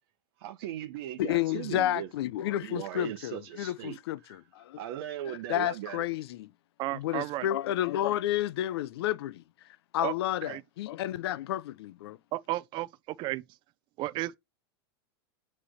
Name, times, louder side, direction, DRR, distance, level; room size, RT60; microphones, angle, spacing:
voice 1, 0.4-2.1 2.6-4.0 4.3-4.4 4.8-6.0, right 12 dB, 65° right, 1.1 m, -38 dB
voice 2, 1.2-4.8 5.3-6.5 6.9-9.4 9.9-12.2, left 13 dB, 70° left, 0.6 m, -31 dB
voice 3, 6.8-7.5 10.0-10.1 10.4-10.6 12.3-12.9 13.2-13.4 14.0-14.4, right 17 dB, 35° right, 0.5 m, -32 dB
8.7 x 3.3 x 6.4 m
supercardioid pair, 140°, 13 cm